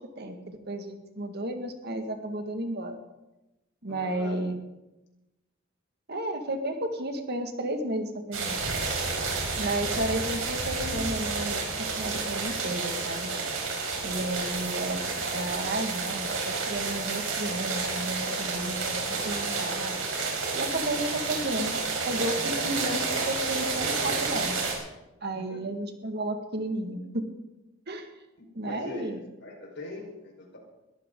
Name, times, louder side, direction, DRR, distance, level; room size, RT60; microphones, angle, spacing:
voice 1, 0.2-3.0 3.8-4.6 6.1-8.6 9.6-11.6 12.0-13.3 14.0-20.0 20.5-21.8 22.0-24.6 25.2-27.3 27.9-28.1 28.6-29.2, right 1 dB, 55° right, 5 dB, 2.0 m, -33 dB
voice 2, 3.9-4.5 25.4-25.7 28.4-30.6, left 2 dB, 60° left, 0 dB, 4.9 m, -42 dB
sound 1, 8.3-24.7, right 4 dB, 75° right, 4.9 m, -30 dB
21.5 x 14.0 x 3.9 m, 0.99 s
head